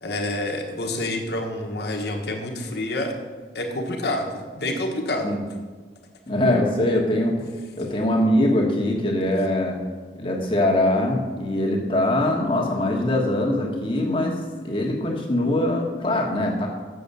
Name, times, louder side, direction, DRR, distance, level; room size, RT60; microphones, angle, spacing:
voice 1, 0.0-3.1 3.5-5.3 7.7-8.0, left 1 dB, 60° left, 2 dB, 1.3 m, -28 dB
voice 2, 6.3-7.5 7.8-9.8 10.2-14.4 14.6-16.7, left 1 dB, 30° left, -1 dB, 1.3 m, -22 dB
7.1 x 6.8 x 6.8 m, 1.4 s
head